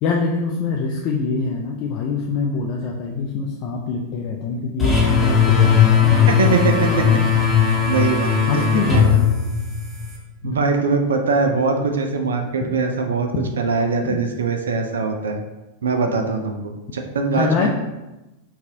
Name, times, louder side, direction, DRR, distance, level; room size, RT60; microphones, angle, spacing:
voice 1, 0.0-7.2 8.5-9.2 10.4-10.6 12.6-12.7 13.3-13.5 14.1-14.2 17.3-17.7, left 4 dB, 40° left, -1 dB, 0.4 m, -25 dB
sound 1, 4.8-10.2, left 7 dB, 5° left, 1.0 m, -17 dB
voice 2, 6.3-6.7 7.9-8.6 8.9-9.0 10.4-13.3 13.6-15.4 15.8-17.7, right 4 dB, 65° right, 5 dB, 0.4 m, -22 dB
5.3 x 2.4 x 2.6 m, 1.0 s
figure-of-eight pair, 90°, 0 cm